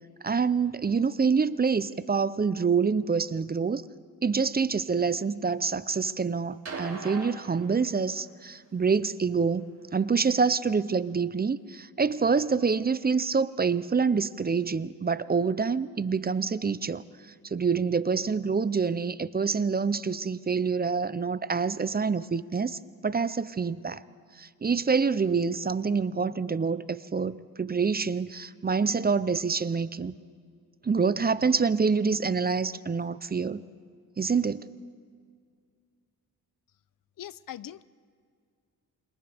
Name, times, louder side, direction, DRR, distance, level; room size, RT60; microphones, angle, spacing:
voice 1, 0.2-3.8 4.2-9.7 9.9-17.0 17.4-24.0 24.4-30.1 30.8-33.6 34.2-34.7, right 5 dB, 25° right, 15 dB, 0.6 m, -26 dB
sound 1, 6.7-8.3 9.6-9.7, right 3 dB, 45° right, 4.6 m, -40 dB
voice 2, 37.2-37.8, left 11 dB, 65° left, 18 dB, 0.6 m, -41 dB
29.0 x 27.0 x 3.5 m, 2.1 s
cardioid pair, 85°, 36 cm